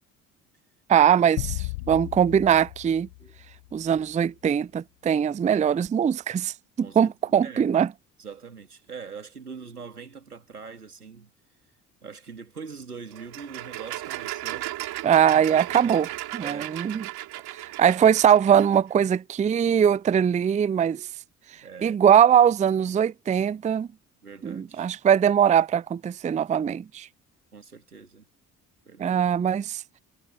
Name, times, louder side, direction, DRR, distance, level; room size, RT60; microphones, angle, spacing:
voice 1, 0.9-3.1 3.7-7.9 15.0-17.0 17.5-21.1 21.8-23.9 24.4-27.1 29.0-29.8, right 8 dB, 15° right, 0.5 m, -21 dB
sound 1, 1.4-3.9, left 24 dB, 70° left, 7.6 m, -35 dB
voice 2, 6.8-7.8 8.2-11.3 12.0-14.7 15.8-16.1 16.4-16.7 21.6-22.0 24.2-24.9 27.5-28.3 28.8-29.2, right 5 dB, 90° right, 3.2 m, -43 dB
sound 2, 13.1-18.8, right 16 dB, 60° right, 3.1 m, -36 dB
figure-of-eight pair, 50°, 44 cm